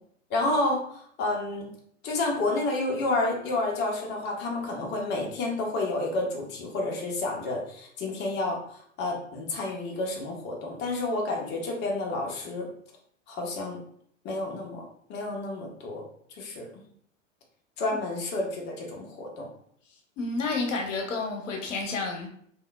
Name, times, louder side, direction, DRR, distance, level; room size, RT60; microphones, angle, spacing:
voice 1, 0.3-1.7 2.0-8.6 9.0-12.7 13.3-13.8 14.2-14.8 15.1-16.0 16.4-16.7 17.8-19.5, left 2 dB, 25° left, 0 dB, 0.7 m, -30 dB
voice 2, 20.2-22.3, left 3 dB, 65° left, 2 dB, 0.8 m, -30 dB
3.5 x 2.5 x 2.3 m, 0.63 s
figure-of-eight pair, 85°, 39 cm